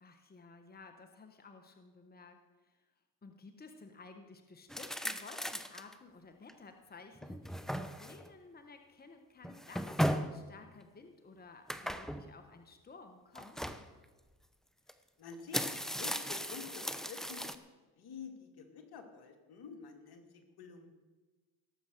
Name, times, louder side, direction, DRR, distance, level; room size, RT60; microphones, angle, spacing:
voice 1, 0.0-2.9 3.2-13.6, left 4 dB, 20° left, 6 dB, 1.3 m, -54 dB
sound 1, 4.7-5.9 6.5-6.6 7.2-8.3 9.4-10.4 11.7-12.3 13.4-13.8 14.9-15.0 15.3-17.6, equal, ahead, 0.8 m, -37 dB
voice 2, 15.2-17.5 18.0-20.9, left 5 dB, 60° left, 5 dB, 2.4 m, -49 dB
18.0 x 7.2 x 6.6 m, 1.3 s
supercardioid pair, 70°, 42 cm